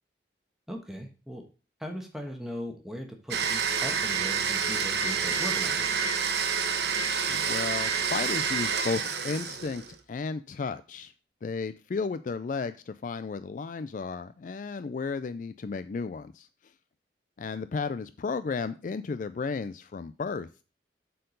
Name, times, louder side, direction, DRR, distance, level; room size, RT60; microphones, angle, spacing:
voice 1, 0.7-1.4 1.8-6.0, equal, ahead, 2 dB, 1.3 m, -39 dB
Domestic sounds home sounds, 3.3-10.0, right 6 dB, 70° right, 1.0 m, -28 dB
voice 2, 7.3-9.8 10.1-11.1 11.4-16.5 17.4-20.6, left 4 dB, 45° left, 12 dB, 0.3 m, -33 dB
7.6 x 4.6 x 5.2 m, 0.34 s
head